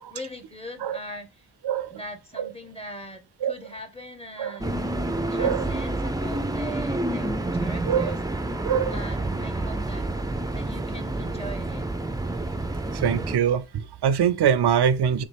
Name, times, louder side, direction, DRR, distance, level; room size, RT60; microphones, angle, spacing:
voice 1, 0.1-1.5 1.9-4.8 5.1-7.3 7.5-8.1 8.9-10.1 10.5-11.9, equal, 15° left, 0.8 m, -40 dB
voice 2, 4.4-4.7 5.4-5.7 7.9-8.1 8.6-9.0 12.9-15.2, right 8 dB, 90° right, 0.5 m, -23 dB
sound 1, 4.6-13.4, right 2 dB, 10° right, 0.4 m, -28 dB
4.0 x 3.5 x 3.3 m
wide cardioid pair, 70°, 38 cm